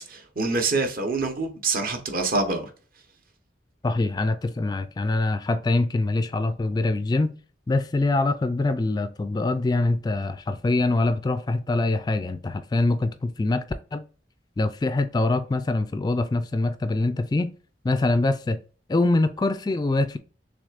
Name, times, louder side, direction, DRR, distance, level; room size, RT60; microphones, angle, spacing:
voice 1, 0.1-2.7, right 3 dB, 50° right, 1.0 m, -26 dB
voice 2, 3.8-7.3 7.7-13.6 13.9-14.0 14.6-17.5 17.8-18.6 18.9-20.2, left 2 dB, 20° left, 0.3 m, -24 dB
6.3 x 3.3 x 2.4 m
head